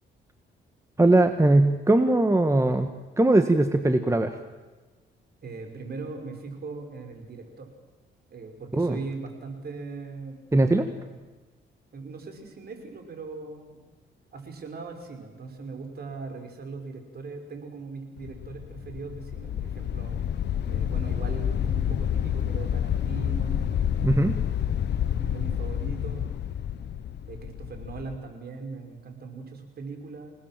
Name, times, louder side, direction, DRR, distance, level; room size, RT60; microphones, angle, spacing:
voice 1, 1.0-2.9 3.2-4.3 8.8-9.0 10.5-10.8 24.0-24.3, right 2 dB, 15° right, 7 dB, 1.7 m, -20 dB
voice 2, 5.4-7.7 8.3-10.4 10.6-11.2 11.9-13.8 14.3-20.2 20.7-24.6 25.2-26.4 27.3-30.3, right 4 dB, 50° right, 4 dB, 5.6 m, -40 dB
sound 1, 18.2-28.2, left 9 dB, 60° left, 1.1 m, -29 dB
28.0 x 19.5 x 7.7 m, 1.2 s
cardioid pair, 90°, 20 cm